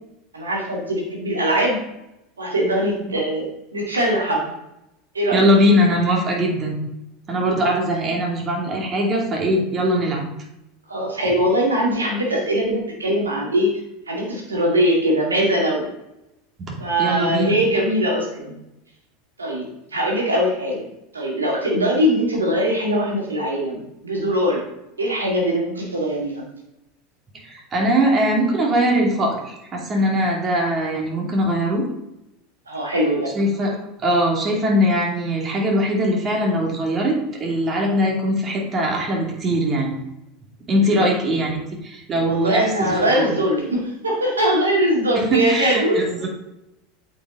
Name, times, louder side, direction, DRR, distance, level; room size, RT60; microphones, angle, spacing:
voice 1, 0.3-1.8 2.4-4.5 5.1-5.4 10.9-13.7 14.1-15.9 16.8-18.5 19.4-20.8 21.1-24.6 25.0-26.5 32.7-33.3 40.8-41.1 42.2-46.0, equal, 90° right, -1 dB, 2.1 m, -21 dB
voice 2, 5.3-6.8 7.3-10.3 17.0-17.6 27.4-31.8 33.3-40.0 40.7-41.5 41.8-43.3 45.1-46.3, equal, 35° right, 0 dB, 2.5 m, -21 dB
8.3 x 5.4 x 3.8 m, 0.87 s
hypercardioid pair, 85°, 0 cm